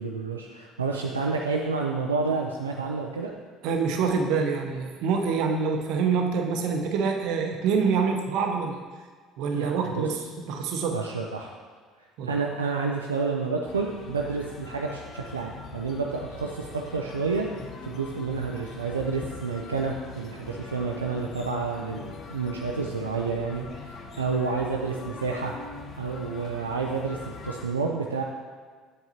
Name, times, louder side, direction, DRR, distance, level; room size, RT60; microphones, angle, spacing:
voice 1, 0.0-3.3 9.5-10.1 10.9-11.5 12.3-17.5 17.8-25.5 26.0-28.2, right 4 dB, 90° right, 0 dB, 0.4 m, -29 dB
voice 2, 3.6-8.8 9.4-10.2 10.5-11.0 12.2-12.3, right 5 dB, 65° right, 3 dB, 0.8 m, -26 dB
sound 1, 13.7-27.7, left 4 dB, 45° left, 0.7 m, -42 dB
8.0 x 6.6 x 2.9 m, 1.6 s
hypercardioid pair, 60°, 0 cm